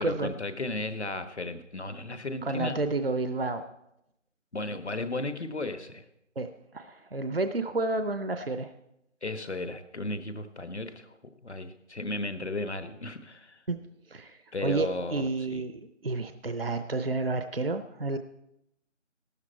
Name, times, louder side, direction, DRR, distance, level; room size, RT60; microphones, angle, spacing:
voice 1, 0.0-2.8 4.5-6.0 9.2-11.1 11.4-13.6 14.5-15.6, left 2 dB, 60° left, 10 dB, 1.3 m, -35 dB
voice 2, 2.4-3.6 6.4-6.5 6.7-8.7 13.7-13.8 14.1-18.2, right 3 dB, 50° right, 9 dB, 0.6 m, -30 dB
13.5 x 12.5 x 4.3 m, 0.84 s
figure-of-eight pair, 180°, 37 cm